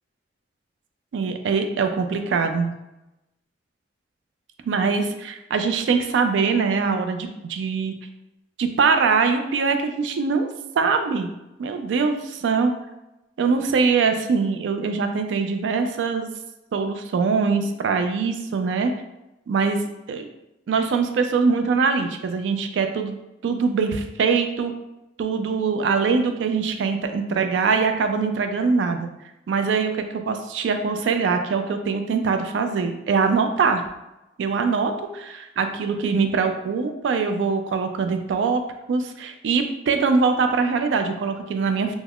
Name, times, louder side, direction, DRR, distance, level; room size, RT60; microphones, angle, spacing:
voice 1, 1.1-2.7 4.7-7.9 8.6-10.5 10.8-11.3 11.6-12.7 13.4-16.3 16.7-18.9 19.5-19.8 20.1-20.2 20.7-23.2 23.4-24.7 25.2-29.1 29.5-33.8 34.4-38.6 38.9-41.9, right 5 dB, 90° right, 7 dB, 0.3 m, -22 dB
2.3 x 2.0 x 3.4 m, 0.94 s
head